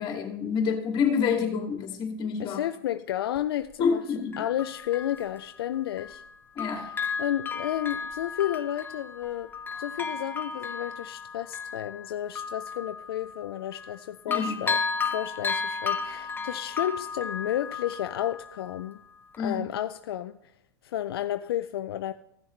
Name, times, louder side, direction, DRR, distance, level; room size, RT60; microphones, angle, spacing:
voice 1, 0.0-2.6 3.8-4.4 6.5-6.9 14.3-14.6 19.4-19.6, left 6 dB, 40° left, 2.4 m, -27 dB
voice 2, 2.4-4.0 4.4-6.2 6.8-9.5 9.8-14.8 15.1-19.0 19.4-20.4 20.8-22.1, left 12 dB, 80° left, 0.4 m, -32 dB
Bell, 3.4-3.5 4.3-6.3 6.6-14.0 14.3-18.9 19.3-19.4, left 5 dB, 15° left, 0.9 m, -34 dB
15.5 x 7.0 x 3.2 m
hypercardioid pair, 100°, 12 cm